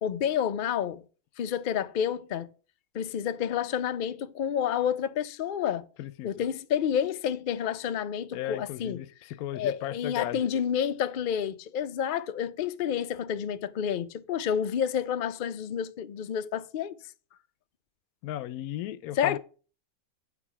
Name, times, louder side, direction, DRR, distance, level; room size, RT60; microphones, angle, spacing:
voice 1, 0.0-1.0 1.4-2.5 2.9-5.8 6.2-9.0 9.5-17.0 19.2-19.4, left 8 dB, 65° left, 0.5 m, -29 dB
voice 2, 6.0-6.4 8.3-10.4 18.2-19.4, left 13 dB, 80° left, 1.1 m, -35 dB
8.4 x 4.8 x 5.6 m
omnidirectional pair, 1.5 m